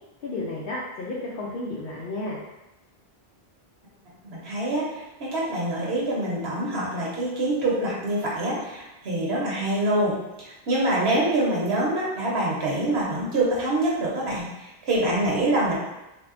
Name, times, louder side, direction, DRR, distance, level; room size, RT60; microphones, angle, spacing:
voice 1, 0.2-2.4, left 2 dB, 65° left, -6 dB, 0.7 m, -32 dB
voice 2, 4.2-15.8, right 1 dB, 70° right, -5 dB, 1.1 m, -25 dB
3.3 x 2.7 x 2.5 m, 0.98 s
omnidirectional pair, 1.1 m